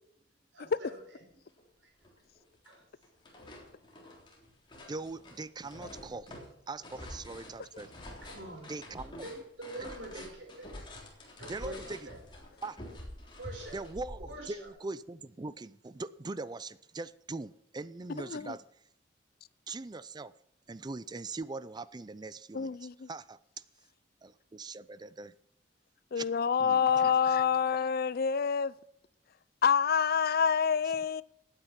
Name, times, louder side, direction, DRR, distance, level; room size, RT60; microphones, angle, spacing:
voice 1, 0.5-1.2 2.6-2.7 8.2-8.7 9.2-10.7 11.4-12.2 13.4-13.8 14.2-14.7, right 1 dB, 85° right, 4.5 m, -45 dB
sound 1, 1.6-1.7 2.0-2.8 3.0-14.7, left 1 dB, 25° left, 3.5 m, -48 dB
voice 2, 4.9-6.4 6.7-7.9 8.7-9.3 9.8-9.9 11.5-12.1 12.6-12.8 13.7-18.6 19.7-20.3 20.7-23.4 24.2-25.3 26.2-26.3 26.6-27.1, right 3 dB, 25° right, 0.4 m, -41 dB
voice 3, 18.2-18.5 22.5-23.1 26.1-28.7 29.6-31.2, left 7 dB, 55° left, 0.5 m, -27 dB
16.0 x 9.0 x 5.8 m
head